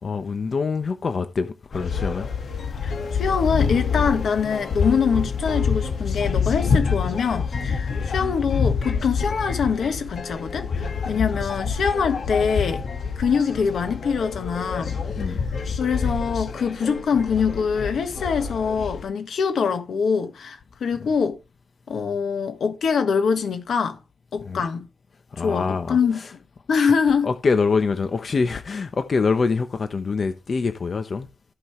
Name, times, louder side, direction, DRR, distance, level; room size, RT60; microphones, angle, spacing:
voice 1, 0.0-2.3 11.1-11.3 15.1-15.5 21.0-21.1 24.4-24.6 25.3-26.3 27.2-31.3, left 4 dB, 55° left, 0.9 m, -25 dB
sound 1, 1.7-19.0, left 5 dB, 70° left, 1.8 m, -27 dB
voice 2, 2.8-12.8 13.2-15.0 15.3-15.4 15.8-21.4 21.9-24.0 24.3-24.9 25.4-26.2 26.7-27.3, left 6 dB, 85° left, 1.6 m, -24 dB
14.5 x 5.6 x 3.2 m
wide cardioid pair, 95°, 0 cm